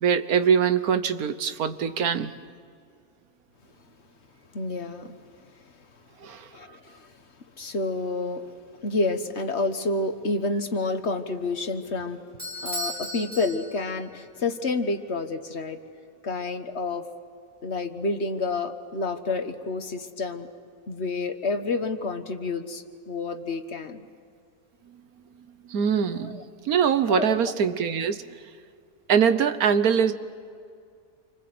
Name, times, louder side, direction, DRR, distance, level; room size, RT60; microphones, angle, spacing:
voice 1, 0.0-2.3 6.2-6.5 25.7-28.2 29.1-30.1, right 7 dB, 85° right, 11 dB, 1.5 m, -23 dB
voice 2, 4.5-5.2 6.5-7.1 7.6-8.4 8.8-12.2 12.6-15.8 16.2-17.1 17.6-20.5 20.9-24.1 26.2-26.4 27.1-27.4, left 3 dB, 50° left, 8 dB, 1.5 m, -29 dB
Bell / Doorbell, 12.4-14.1, equal, 30° right, 7.3 m, -35 dB
29.0 x 25.0 x 7.9 m, 2.2 s
omnidirectional pair, 1.5 m